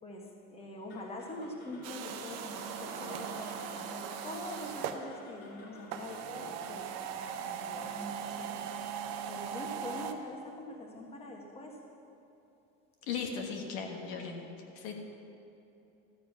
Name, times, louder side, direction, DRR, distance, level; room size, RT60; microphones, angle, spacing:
voice 1, 0.0-8.7 9.3-11.8, left 1 dB, 20° left, 1 dB, 1.3 m, -44 dB
sound 1, 0.9-9.1, left 4 dB, 50° left, 2.2 m, -51 dB
sound 2, 1.8-5.0 5.8-10.1, right 8 dB, 60° right, 0.8 m, -39 dB
voice 2, 13.1-14.4 14.7-14.9, left 6 dB, 90° left, 2 dB, 1.6 m, -37 dB
13.5 x 7.3 x 5.8 m, 2.9 s
cardioid pair, 145°, 31 cm